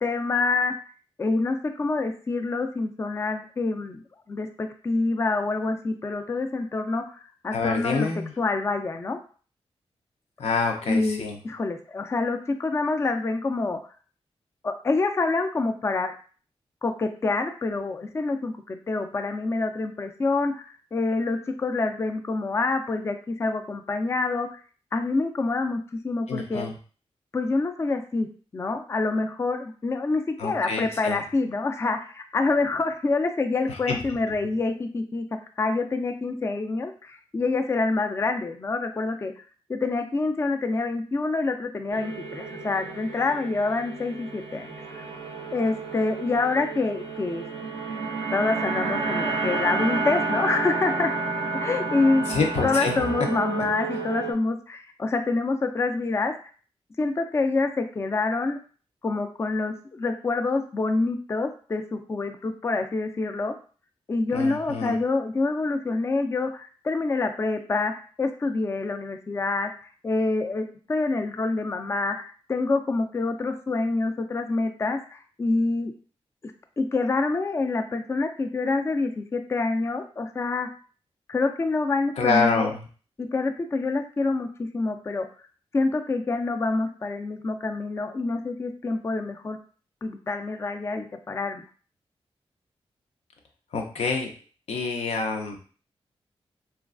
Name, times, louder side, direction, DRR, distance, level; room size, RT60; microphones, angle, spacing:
voice 1, 0.0-0.7 1.2-4.0 4.3-8.1 8.4-9.2 10.8-13.8 14.6-16.1 16.8-24.6 24.9-26.7 27.3-28.3 28.5-35.3 35.6-39.4 39.7-45.0 45.5-47.4 48.3-51.1 51.5-52.3 52.6-56.3 57.0-58.6 59.0-63.5 64.1-69.7 70.0-75.9 76.8-80.7 81.3-82.7 83.2-85.3 85.7-89.6 90.0-91.6, left 3 dB, 25° left, 6 dB, 0.3 m, -26 dB
voice 2, 7.5-8.3 10.4-11.4 26.3-26.7 30.4-31.2 33.7-34.0 52.3-53.0 64.3-65.0 82.2-82.8 93.7-94.3 94.7-95.6, left 4 dB, 85° left, 2 dB, 0.5 m, -27 dB
sound 1, 41.9-54.3, right 3 dB, 85° right, 0.5 m, -30 dB
3.1 x 2.3 x 2.4 m, 0.40 s
cardioid pair, 65°, 11 cm